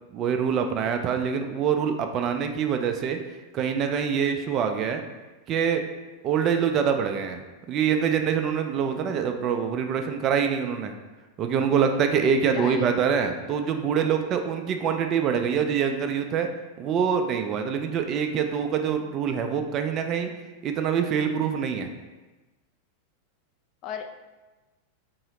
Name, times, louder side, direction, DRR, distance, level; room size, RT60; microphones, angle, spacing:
voice 1, 0.1-3.2 3.5-5.0 5.5-5.8 6.2-10.9 11.4-16.5 16.8-20.3 20.6-21.9, right 7 dB, 35° right, 6 dB, 0.3 m, -25 dB
voice 2, 12.5-12.9 18.5-18.6 23.8-24.1, left 7 dB, 35° left, 6 dB, 0.4 m, -36 dB
4.6 x 2.8 x 3.1 m, 1.2 s
figure-of-eight pair, 90°, 0 cm